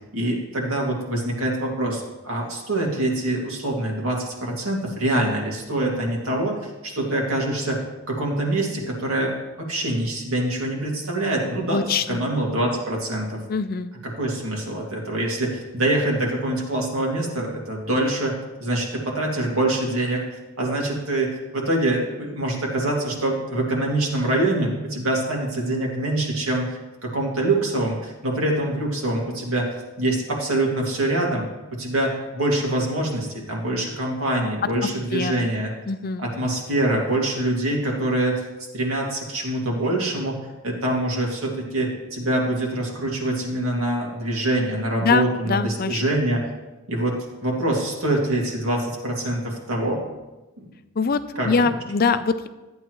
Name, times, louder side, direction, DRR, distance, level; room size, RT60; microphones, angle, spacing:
voice 1, 0.1-7.8 8.1-13.4 14.0-18.3 18.6-20.3 20.6-31.5 31.7-35.7 36.2-38.4 38.7-40.4 40.6-46.5 46.9-50.0 50.6-50.7 51.4-51.7, right 1 dB, 75° right, -1 dB, 2.3 m, -25 dB
voice 2, 11.7-12.2 13.5-13.9 35.1-35.5 35.9-36.2 45.0-46.0 51.0-51.2 51.5-52.5, left 5 dB, 45° left, 11 dB, 0.4 m, -23 dB
14.0 x 8.7 x 3.1 m, 1.1 s
head